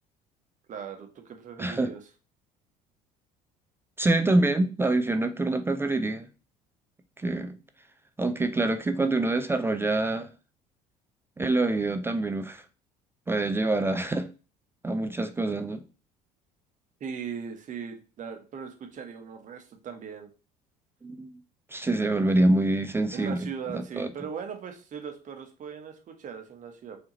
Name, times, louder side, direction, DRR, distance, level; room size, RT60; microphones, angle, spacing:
voice 1, 0.7-2.0 17.0-20.3 23.1-27.0, right 7 dB, 35° right, 1.0 m, -39 dB
voice 2, 1.6-1.9 4.0-6.3 7.2-7.6 8.2-10.3 11.4-12.6 13.3-14.3 14.8-15.8 21.0-21.4 21.7-24.1, right 2 dB, 10° right, 0.4 m, -26 dB
4.6 x 2.8 x 2.9 m
figure-of-eight pair, 60°, 21 cm